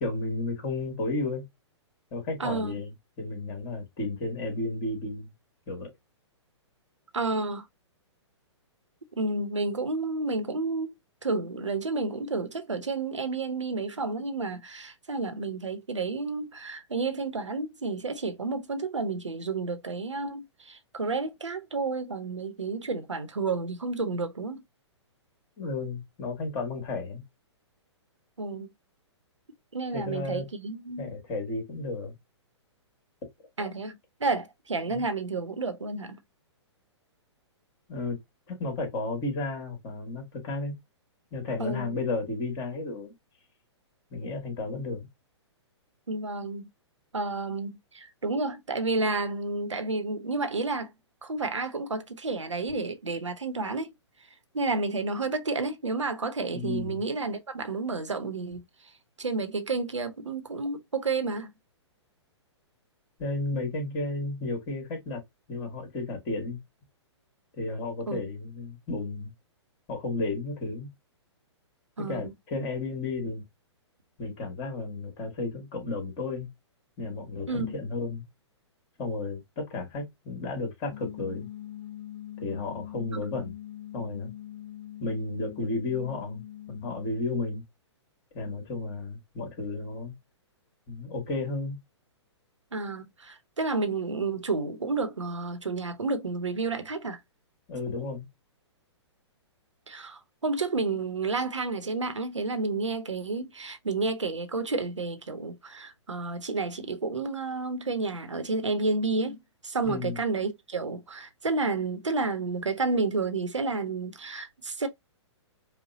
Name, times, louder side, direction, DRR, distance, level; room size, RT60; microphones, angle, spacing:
voice 1, 0.0-1.4 2.1-5.3 5.7-5.9 25.6-27.2 29.9-30.4 31.0-32.2 34.9-35.0 37.9-38.2 38.5-40.7 41.3-43.1 44.1-45.1 56.5-57.0 63.2-65.2 65.5-66.6 67.6-69.3 69.9-70.9 72.0-73.4 74.2-76.5 77.0-78.2 79.0-81.5 82.4-83.5 83.9-84.3 85.0-87.6 88.3-90.1 90.9-91.8 97.7-98.3 109.8-110.2, left 3 dB, 35° left, 2.2 m, -33 dB
voice 2, 2.4-2.7 7.1-7.7 9.2-10.9 11.2-24.6 28.4-28.7 29.7-31.1 33.6-36.2 41.6-41.9 46.1-46.7 47.1-50.9 51.2-53.9 54.5-58.6 59.2-61.5 68.1-68.2 72.0-72.3 77.5-77.7 83.1-83.3 92.7-97.2 99.9-109.4 109.6-114.9, right 3 dB, 85° right, 0.8 m, -31 dB
sound 1, 80.9-87.1, left 12 dB, 60° left, 0.9 m, -42 dB
5.0 x 2.2 x 2.7 m
figure-of-eight pair, 120°, 15 cm